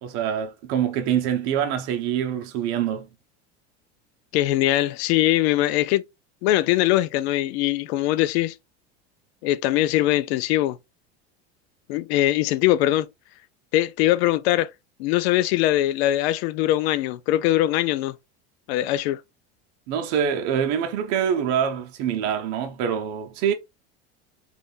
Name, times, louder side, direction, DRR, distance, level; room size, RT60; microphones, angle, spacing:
voice 1, 0.0-3.1 19.9-23.5, right 8 dB, 60° right, 0.8 m, -25 dB
voice 2, 4.3-6.0 6.4-8.5 9.4-10.8 11.9-13.1 13.7-14.7 15.0-18.2 18.7-19.2, left 15 dB, 75° left, 0.5 m, -21 dB
3.6 x 2.5 x 2.5 m
supercardioid pair, 115°, 32 cm